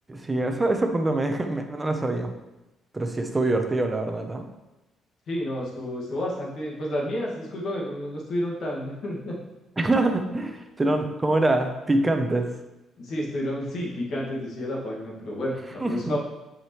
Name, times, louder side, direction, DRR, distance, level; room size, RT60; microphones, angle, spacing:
voice 1, 0.1-2.3 2.9-4.5 9.8-12.5 15.8-16.1, right 2 dB, 15° right, 5 dB, 0.7 m, -25 dB
voice 2, 5.3-9.4 10.8-10.9 13.0-16.2, left 1 dB, 60° left, -3 dB, 1.9 m, -30 dB
7.2 x 5.0 x 3.1 m, 1.0 s
cardioid pair, 105°, 0 cm